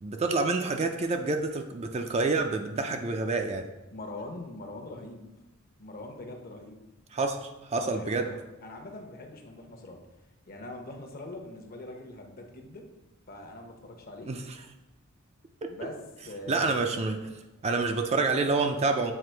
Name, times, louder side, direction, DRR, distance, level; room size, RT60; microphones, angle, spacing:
voice 1, 0.0-3.7 7.1-8.3 14.3-14.4 16.5-17.2 17.6-19.1, right 3 dB, 30° right, 5 dB, 0.4 m, -28 dB
voice 2, 3.9-5.3 5.8-6.8 7.7-10.0 10.5-12.9 13.3-14.3 15.7-16.0 16.2-17.3, left 2 dB, 45° left, 3 dB, 0.8 m, -43 dB
7.7 x 2.9 x 4.4 m, 1.0 s
head